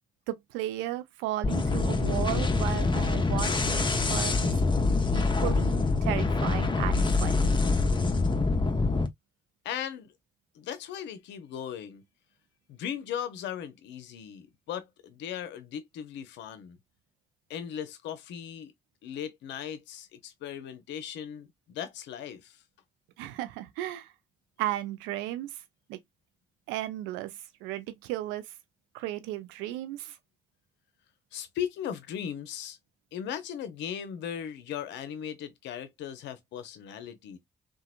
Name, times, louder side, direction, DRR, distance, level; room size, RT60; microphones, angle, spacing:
voice 1, 0.3-4.6 5.1-5.8 6.0-7.5 23.2-24.1 24.6-25.6 25.9-26.0 26.7-28.5 28.9-30.2, right 14 dB, 80° right, 0.4 m, -35 dB
sound 1, 1.4-9.1, left 3 dB, 25° left, 0.7 m, -25 dB
voice 2, 9.6-10.1 10.5-12.0 12.7-16.8 17.5-18.7 19.0-22.6 31.3-32.8 33.1-37.4, left 9 dB, 75° left, 0.6 m, -38 dB
2.9 x 2.3 x 2.4 m
hypercardioid pair, 40°, 19 cm